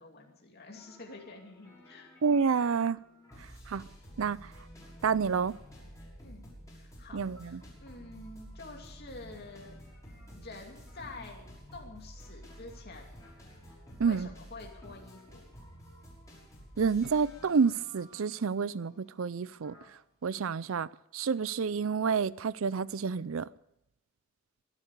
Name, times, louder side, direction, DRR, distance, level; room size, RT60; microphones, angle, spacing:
voice 1, 0.0-2.1 6.2-6.4 6.7-9.8 10.3-11.5 11.7-13.1 14.0-15.4, left 3 dB, 50° left, 2.6 m, -48 dB
sound 1, 0.7-19.9, equal, 15° left, 6.2 m, -51 dB
voice 2, 2.2-3.0 3.7-3.9 4.2-4.5 5.0-5.6 7.1-7.6 14.0-14.3 16.8-19.8 20.2-20.9 21.1-23.5, right 5 dB, 75° right, 0.5 m, -29 dB
23.5 x 8.4 x 6.7 m
head